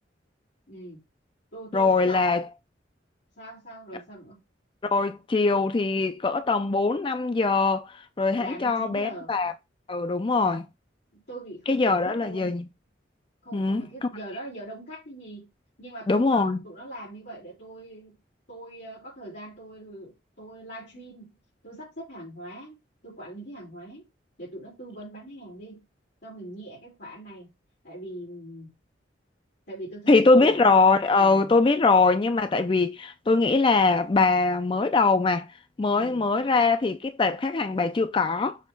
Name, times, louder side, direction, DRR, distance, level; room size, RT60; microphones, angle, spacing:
voice 1, 0.7-1.0 1.5-2.3 3.4-4.4 8.4-9.3 11.1-12.6 13.4-15.5 15.8-18.1 18.5-21.3 21.6-22.8 23.0-24.0 24.4-25.8 26.2-27.5 27.8-28.7 29.7-30.5 31.2-31.6 35.9-36.3, right 1 dB, 60° left, 3.5 m, -41 dB
voice 2, 1.7-2.4 4.9-9.5 9.9-10.6 11.7-12.6 13.5-14.1 16.1-16.6 30.1-35.5 35.8-38.6, left 3 dB, 25° left, 0.4 m, -22 dB
6.4 x 3.1 x 5.2 m
head